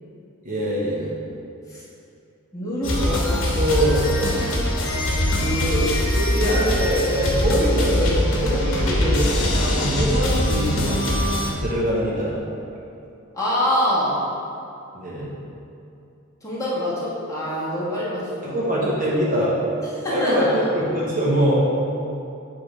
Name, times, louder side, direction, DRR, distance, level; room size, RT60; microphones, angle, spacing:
voice 1, 0.4-1.1 2.9-4.0 5.4-11.1 11.6-12.4 14.9-15.3 18.4-19.6 20.1-21.5, equal, 40° right, -6 dB, 1.1 m, -23 dB
voice 2, 2.5-3.0 13.3-14.2 16.4-18.6 20.0-20.5, equal, 15° left, -10 dB, 1.7 m, -25 dB
sound 1, 2.8-11.5, left 1 dB, 60° left, 1.2 m, -22 dB
8.2 x 3.7 x 4.9 m, 2.6 s
head